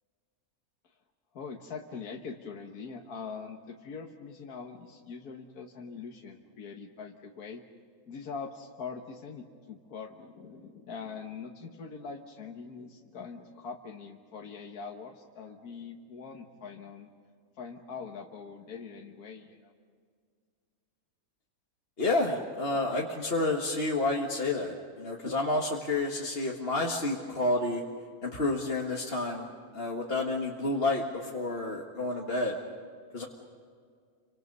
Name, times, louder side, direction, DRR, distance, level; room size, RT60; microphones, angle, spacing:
voice 1, 1.3-7.6 8.1-17.1 17.6-19.7, left 5 dB, 80° left, 2 dB, 1.8 m, -43 dB
voice 2, 22.0-27.8 28.2-32.6 33.1-33.2, left 2 dB, 40° left, -1 dB, 2.0 m, -30 dB
30.0 x 25.5 x 5.5 m, 2.1 s
omnidirectional pair, 1.6 m